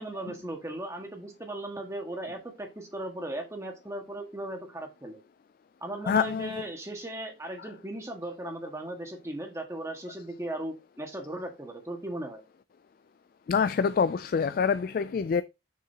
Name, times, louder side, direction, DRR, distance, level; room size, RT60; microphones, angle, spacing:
voice 1, 0.0-5.2 5.8-12.4, right 1 dB, 15° right, 1.7 m, -37 dB
voice 2, 6.1-6.5 13.5-15.4, left 6 dB, 50° left, 0.3 m, -26 dB
6.7 x 6.5 x 2.9 m
head